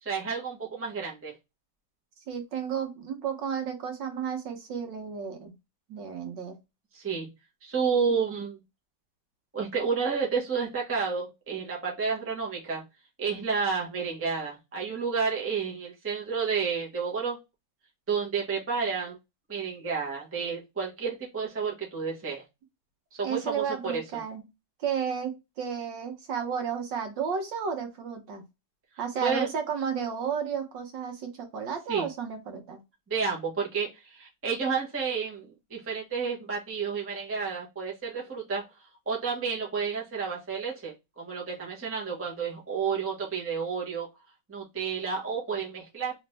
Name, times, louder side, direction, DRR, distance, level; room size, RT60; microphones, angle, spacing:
voice 1, 0.0-1.3 6.9-7.3 7.6-8.6 9.5-12.8 13.2-17.4 18.1-19.2 19.5-22.4 23.1-24.0 29.2-29.5 31.9-32.1 33.1-38.7 39.1-44.1 44.5-46.1, right 5 dB, 10° right, -2 dB, 0.7 m, -30 dB
voice 2, 2.3-5.5 5.9-6.6 23.2-24.4 24.8-28.4 29.0-32.8, right 7 dB, 70° right, 4 dB, 1.5 m, -32 dB
3.3 x 3.1 x 3.2 m, 0.23 s
omnidirectional pair, 2.2 m